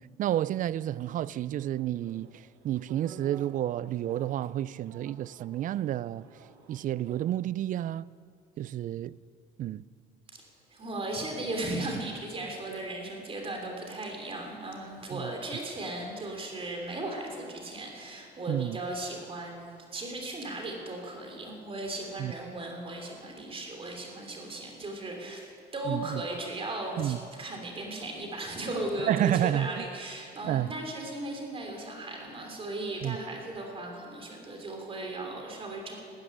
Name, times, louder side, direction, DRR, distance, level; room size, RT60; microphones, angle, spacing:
voice 1, 0.0-6.3 6.7-8.1 8.6-9.2 9.6-9.8 15.1-15.3 18.5-18.8 22.2-22.3 25.9-26.2 27.0-27.2 29.0-29.8 30.4-30.7 33.0-33.2, right 12 dB, 50° right, 0.4 m, -30 dB
sound 1, 1.9-7.2, right 6 dB, 90° right, 1.8 m, -52 dB
voice 2, 10.7-35.9, right 2 dB, 35° right, 3.0 m, -37 dB
13.5 x 10.0 x 9.6 m
cardioid pair, 110°, 17 cm